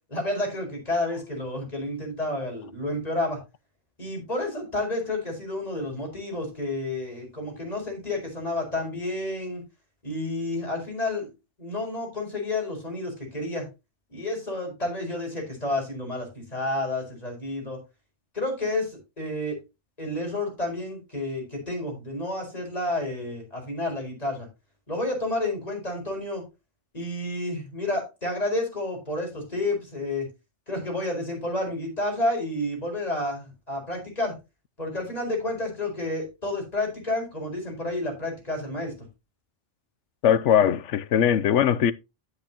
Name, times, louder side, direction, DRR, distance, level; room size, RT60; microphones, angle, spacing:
voice 1, 0.1-3.4 4.0-9.6 10.0-11.3 11.6-13.7 14.1-17.8 18.3-19.6 20.0-24.5 24.9-26.4 26.9-30.3 30.7-34.3 34.8-38.9, left 2 dB, 35° left, 5.0 m, -30 dB
voice 2, 40.2-41.9, left 9 dB, 80° left, 1.0 m, -20 dB
9.7 x 9.4 x 2.9 m
omnidirectional pair, 1.2 m